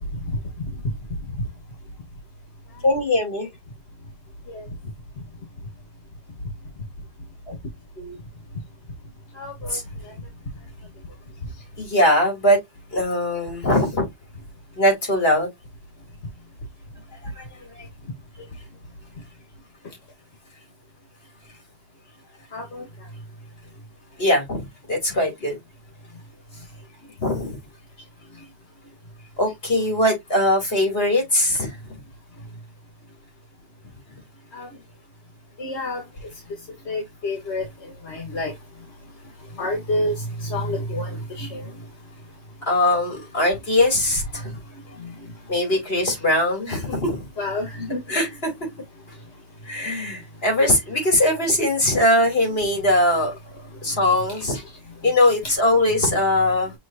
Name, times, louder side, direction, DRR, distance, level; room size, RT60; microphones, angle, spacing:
voice 1, 2.8-3.5 8.0-8.1 9.7-9.8 11.8-12.6 12.9-14.1 14.8-15.5 17.4-17.5 17.8-17.9 24.2-24.6 24.9-25.6 27.2-27.5 29.4-31.8 42.7-44.5 45.5-47.3 48.1-48.5 49.6-53.3 53.8-54.6 55.0-56.7, left 1 dB, 65° left, 2.9 m, -21 dB
voice 2, 9.4-9.8 22.5-22.8 34.5-34.7 35.6-36.0 36.9-37.6 38.1-38.5 39.6-41.6 47.4-48.0, left 1 dB, 85° left, 1.6 m, -28 dB
6.3 x 3.2 x 2.6 m
omnidirectional pair, 1.1 m